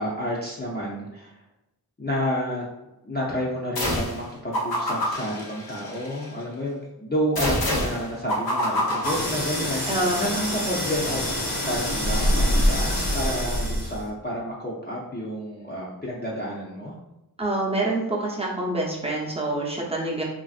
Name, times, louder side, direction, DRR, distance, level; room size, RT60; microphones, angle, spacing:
voice 1, 0.0-1.3 2.0-2.6 3.0-9.8 10.2-11.2 11.6-16.9, equal, 25° left, -5 dB, 0.5 m, -30 dB
sound 1, 3.8-4.2 4.5-6.3 7.4-10.0, equal, 70° left, 0.7 m, -27 dB
sound 2, 9.0-14.1, equal, 85° left, 1.0 m, -25 dB
voice 2, 9.9-10.2 17.4-20.2, right 2 dB, 15° right, -3 dB, 0.7 m, -26 dB
3.0 x 2.5 x 2.4 m, 0.96 s
wide cardioid pair, 55°, 38 cm